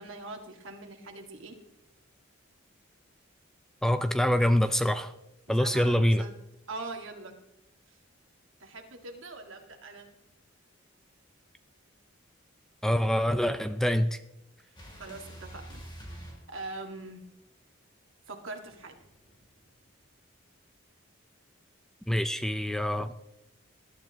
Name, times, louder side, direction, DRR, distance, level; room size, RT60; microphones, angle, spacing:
voice 1, 0.0-1.6 5.5-6.3 6.7-7.4 8.6-10.1 14.9-17.2 18.3-19.0, right 2 dB, 75° right, 3 dB, 2.0 m, -42 dB
voice 2, 3.8-5.1 5.5-6.2 12.8-14.2 22.1-23.1, equal, ahead, 10 dB, 0.4 m, -25 dB
sound 1, 14.8-17.2 18.7-20.0, equal, 20° left, 3.2 m, -47 dB
20.5 x 12.0 x 3.1 m, 0.85 s
head